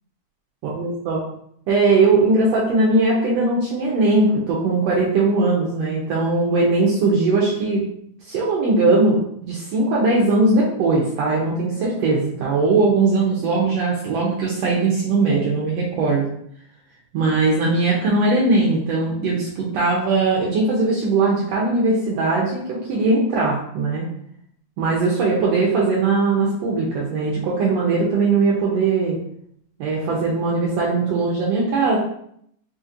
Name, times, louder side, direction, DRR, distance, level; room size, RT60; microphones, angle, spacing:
voice 1, 0.6-1.2 1.7-7.8 8.3-16.2 17.1-24.1 24.8-29.2 29.8-32.0, right 3 dB, 75° right, -4 dB, 1.6 m, -20 dB
5.0 x 2.8 x 2.5 m, 0.69 s
omnidirectional pair, 3.5 m